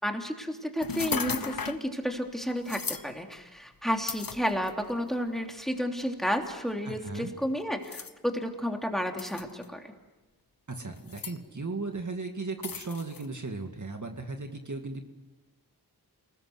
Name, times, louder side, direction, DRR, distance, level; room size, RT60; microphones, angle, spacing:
voice 1, 0.0-9.9, equal, ahead, 3 dB, 3.1 m, -31 dB
sound 1, 0.8-1.9 2.7-3.1 4.1-4.9 5.7-5.8 7.8-8.1 9.2-9.7 11.0-11.4 12.6-13.3, left 6 dB, 60° left, 1.3 m, -35 dB
voice 2, 6.8-7.3 10.7-15.0, right 3 dB, 50° right, 4 dB, 2.2 m, -36 dB
29.0 x 20.5 x 8.0 m, 1.2 s
wide cardioid pair, 85°, 38 cm